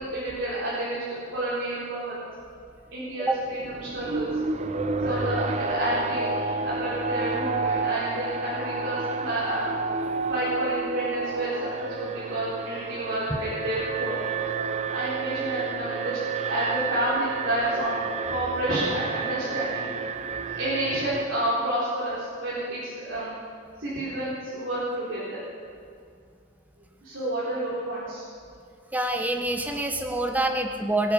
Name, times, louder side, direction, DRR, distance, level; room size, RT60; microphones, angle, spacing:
voice 1, 0.0-2.4 2.9-4.3 5.0-9.7 10.3-14.2 14.9-18.0 18.3-19.9 20.4-23.3 23.8-25.4 27.0-28.2, right 1 dB, 75° right, -9 dB, 4.1 m, -30 dB
Alarm, 3.3-21.3, right 4 dB, 35° right, 0.6 m, -30 dB
voice 2, 28.9-31.1, right 1 dB, 10° right, 4 dB, 1.1 m, -26 dB
21.5 x 9.5 x 6.6 m, 2.3 s
head